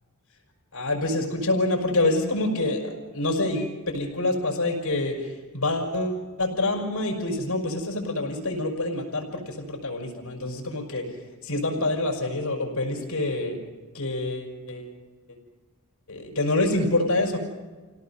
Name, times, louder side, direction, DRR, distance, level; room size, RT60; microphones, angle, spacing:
voice 1, 0.7-11.2 11.4-13.6 13.9-14.9 16.1-17.4, left 2 dB, 80° left, 1 dB, 5.5 m, -26 dB
27.5 x 18.0 x 5.7 m, 1.3 s
head